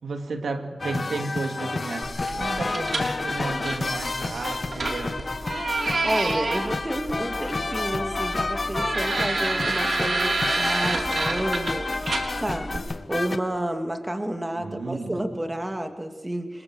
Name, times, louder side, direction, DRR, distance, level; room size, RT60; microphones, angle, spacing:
voice 1, 0.0-5.2 14.6-15.3, right 3 dB, 85° right, 5 dB, 2.6 m, -33 dB
sound 1, 0.8-13.4, left 3 dB, 50° left, 1.5 m, -30 dB
sound 2, 2.0-12.8, right 2 dB, 60° right, 3.7 m, -29 dB
voice 2, 6.0-16.6, right 1 dB, 20° right, 5 dB, 2.4 m, -30 dB
26.0 x 22.0 x 6.4 m, 1.2 s
cardioid pair, 45°, 0 cm